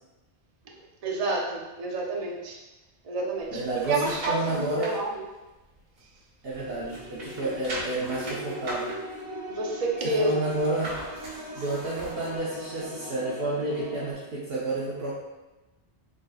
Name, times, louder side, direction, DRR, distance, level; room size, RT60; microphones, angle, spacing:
voice 1, 1.0-2.6 3.0-3.6 3.9-5.3 9.5-10.6, right 2 dB, 45° right, 0 dB, 0.6 m, -29 dB
sound 1, 3.4-5.0 5.5-6.6 6.8-12.4 12.8-12.9, right 1 dB, 90° right, 1.4 m, -40 dB
voice 2, 3.5-4.9 6.4-8.9 10.0-11.0 11.6-15.1, right 2 dB, 65° right, -6 dB, 0.9 m, -30 dB
sound 2, 6.5-14.1, equal, 55° left, 1.4 m, -40 dB
3.9 x 3.8 x 2.3 m, 1.1 s
omnidirectional pair, 1.1 m